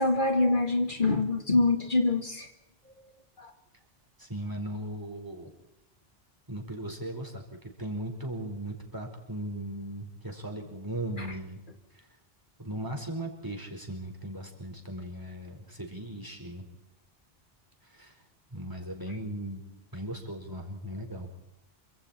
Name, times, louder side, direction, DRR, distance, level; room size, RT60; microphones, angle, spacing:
voice 1, 0.0-2.5 3.4-3.5 11.2-11.3, left 2 dB, 55° left, 5 dB, 2.3 m, -25 dB
voice 2, 4.2-5.5 6.5-11.6 11.9-12.1 12.6-16.6 17.9-18.2 18.5-19.6 19.9-21.3, right 1 dB, 20° right, 1 dB, 4.9 m, -38 dB
28.0 x 25.5 x 4.5 m, 0.87 s
omnidirectional pair, 1.0 m